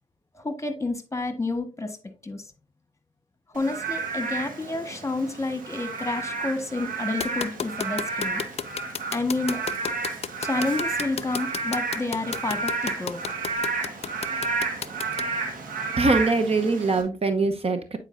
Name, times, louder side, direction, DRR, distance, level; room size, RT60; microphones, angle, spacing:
voice 1, 0.3-2.0 2.2-2.5 3.5-8.4 9.1-9.6 10.4-13.2, left 2 dB, 20° left, 8 dB, 1.4 m, -29 dB
Frog / Rain, 3.6-17.0, right 3 dB, 85° right, 1.4 m, -31 dB
sound 1, 7.2-15.2, left 7 dB, 50° left, 0.4 m, -31 dB
voice 2, 16.0-18.0, right 3 dB, 45° right, 8 dB, 0.9 m, -23 dB
8.9 x 4.5 x 2.6 m, 0.33 s
cardioid pair, 55°, 14 cm